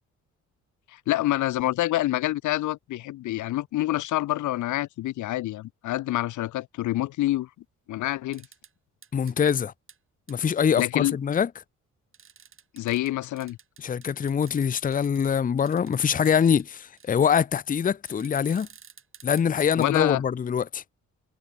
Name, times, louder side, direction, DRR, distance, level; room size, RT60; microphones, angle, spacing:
voice 1, 0.9-7.5 7.9-8.5 10.8-11.2 12.7-13.6 19.8-20.2, left 15 dB, 75° left, 0.8 m, -27 dB
sound 1, 8.3-8.7 9.0-9.6 9.9-10.0 10.3-10.4 10.8-10.9 12.1-15.3 15.7-16.6 17.0-17.3 18.0-19.9, right 6 dB, 45° right, 4.2 m, -52 dB
voice 2, 9.1-9.7 10.3-11.5 13.8-18.7 19.2-20.8, left 7 dB, 30° left, 0.6 m, -24 dB
cardioid pair, 90°, 30 cm